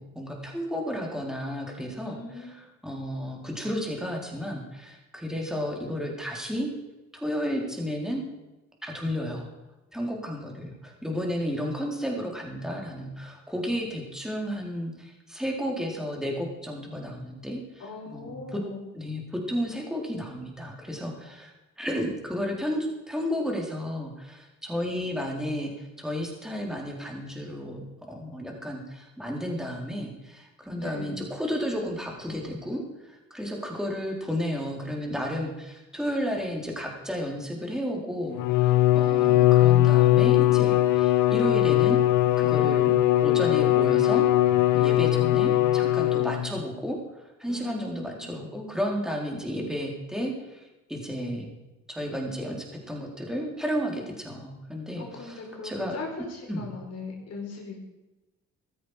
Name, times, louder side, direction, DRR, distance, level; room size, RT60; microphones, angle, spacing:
voice 1, 0.0-2.5 2.8-6.7 7.1-8.2 8.8-9.5 9.9-18.6 18.9-19.2 19.5-21.5 21.8-32.8 33.1-42.0 42.4-42.9 43.2-44.2 44.7-47.0 47.4-50.6 50.9-51.5 51.9-55.4 55.6-56.0 56.5-56.7, equal, ahead, 0 dB, 3.9 m, -32 dB
voice 2, 2.0-2.6 17.8-18.8 30.7-31.2 47.5-48.4 55.0-57.8, left 3 dB, 55° left, 0 dB, 4.3 m, -39 dB
Bowed string instrument, 38.3-46.6, left 15 dB, 80° left, 0.7 m, -20 dB
14.5 x 13.0 x 5.0 m, 1.1 s
cardioid pair, 90°, 30 cm